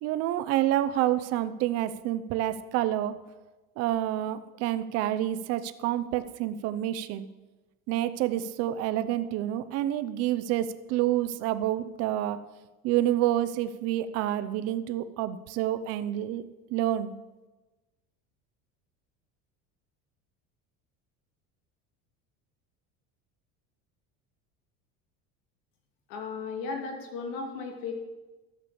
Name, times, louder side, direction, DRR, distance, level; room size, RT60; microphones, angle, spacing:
voice 1, 0.0-3.1 3.8-7.3 7.9-12.4 12.8-16.4 16.7-17.1, right 13 dB, 45° right, 11 dB, 0.7 m, -28 dB
voice 2, 26.1-27.9, left 4 dB, 75° left, 3 dB, 2.6 m, -35 dB
12.5 x 6.9 x 6.9 m, 1.1 s
cardioid pair, 175°, 33 cm